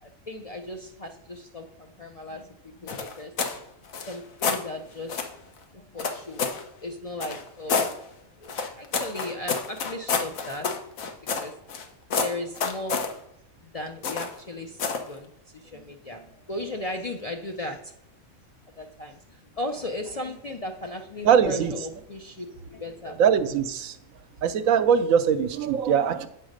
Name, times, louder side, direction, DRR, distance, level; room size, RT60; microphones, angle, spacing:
voice 1, 0.0-3.3 4.1-5.3 5.7-6.5 6.8-7.9 8.4-10.7 11.4-11.6 12.2-13.0 13.6-17.9 18.8-23.2, left 1 dB, 50° left, 0.4 m, -36 dB
sound 1, 2.9-3.6 3.9-4.6 5.1-5.3 6.0-6.6 7.2-7.9 8.5-11.8 12.1-13.1 14.0-14.4 14.8-15.1, left 5 dB, 85° left, 1.3 m, -28 dB
voice 2, 21.2-21.7 23.2-24.0 24.4-26.3, right 7 dB, 85° right, 1.1 m, -21 dB
8.4 x 3.9 x 6.4 m
omnidirectional pair, 1.4 m